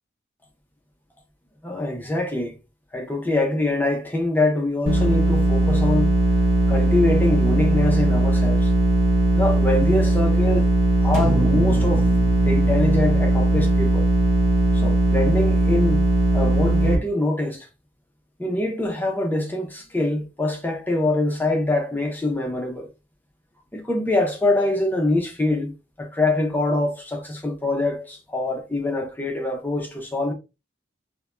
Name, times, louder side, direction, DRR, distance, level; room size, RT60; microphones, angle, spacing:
voice 1, 1.6-2.6 2.9-6.1 6.7-8.7 9.3-10.7 11.0-12.1 12.4-14.1 14.7-16.0 16.3-17.7 18.4-22.9 23.7-25.7 26.0-30.3, left 2 dB, 10° left, 0.4 m, -24 dB
sound 1, 4.9-17.0, right 1 dB, 60° right, 1.0 m, -19 dB
sound 2, 11.1-15.4, right 1 dB, 35° right, 0.7 m, -31 dB
3.2 x 2.1 x 2.3 m
head